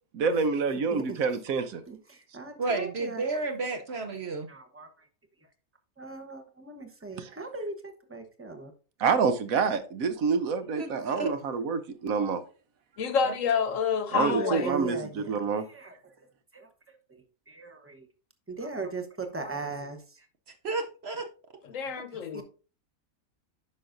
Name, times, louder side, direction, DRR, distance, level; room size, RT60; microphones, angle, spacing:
voice 1, 0.1-1.8 9.0-12.4 14.1-15.6, right 5 dB, 70° right, 1.1 m, -27 dB
voice 2, 1.9-4.0 4.5-5.1 6.0-8.7 14.1-15.9 16.5-18.1 18.5-20.3 22.1-22.4, right 4 dB, 10° right, 0.7 m, -39 dB
voice 3, 2.6-4.5 10.8-11.3 20.6-21.2, right 3 dB, 55° right, 0.9 m, -31 dB
voice 4, 13.0-14.7 21.6-22.4, left 6 dB, 65° left, 1.1 m, -28 dB
9.5 x 5.7 x 2.6 m
omnidirectional pair, 1.6 m